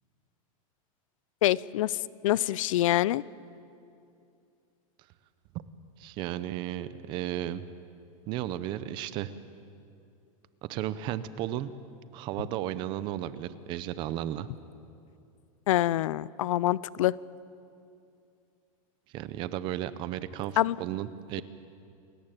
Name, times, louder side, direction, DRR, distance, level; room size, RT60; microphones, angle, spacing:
voice 1, 1.4-2.0 2.2-3.2 15.7-17.1 20.6-20.8, left 14 dB, 65° left, 21 dB, 0.6 m, -25 dB
voice 2, 6.0-7.6 8.3-9.3 10.6-11.7 12.1-14.5 19.1-21.4, right 12 dB, 25° right, 15 dB, 0.7 m, -34 dB
28.5 x 14.5 x 9.0 m, 2.5 s
supercardioid pair, 175°, 18 cm